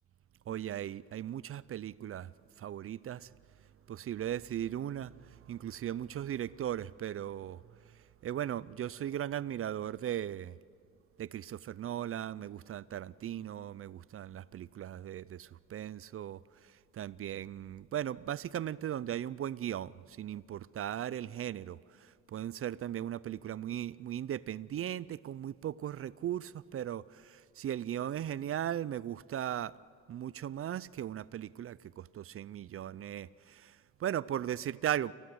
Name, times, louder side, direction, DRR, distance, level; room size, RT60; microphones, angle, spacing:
voice 1, 0.5-2.3 2.6-3.3 3.9-10.6 11.2-29.7 30.1-35.1, right 11 dB, 45° right, 0.5 m, -38 dB
28.5 x 15.5 x 7.9 m
cardioid pair, 90°, 30 cm